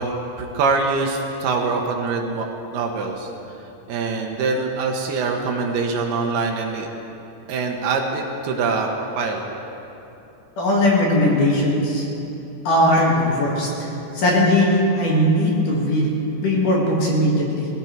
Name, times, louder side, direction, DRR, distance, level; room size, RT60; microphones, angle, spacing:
voice 1, 0.0-2.5 2.7-3.3 3.9-6.9 7.5-8.9 9.2-9.5, right 4 dB, 75° right, 2 dB, 2.9 m, -24 dB
voice 2, 10.6-12.0 12.6-16.1 16.4-17.7, left 1 dB, 55° left, -3 dB, 3.1 m, -19 dB
19.0 x 15.5 x 4.5 m, 2.9 s
omnidirectional pair, 5.0 m